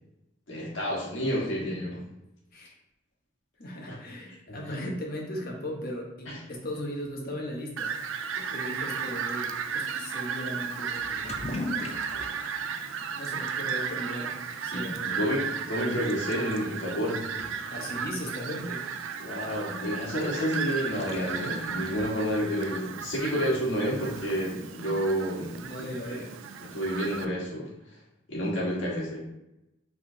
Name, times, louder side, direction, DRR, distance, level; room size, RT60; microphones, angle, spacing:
voice 1, 0.5-2.0 3.9-4.0 4.5-4.7 6.2-6.4 8.3-8.5 11.8-12.3 14.7-17.2 19.2-25.6 26.7-27.7 28.3-29.2, equal, 70° left, -4 dB, 1.6 m, -30 dB
voice 2, 3.6-7.9 8.5-11.9 13.1-15.2 17.7-18.9 25.5-26.3, equal, 50° left, -1 dB, 1.1 m, -37 dB
Fowl, 7.8-27.3, right 7 dB, 85° right, 0.4 m, -35 dB
Toilet flush / Liquid, 10.9-22.6, left 2 dB, 30° left, 0.5 m, -43 dB
4.8 x 3.6 x 2.8 m, 0.89 s
head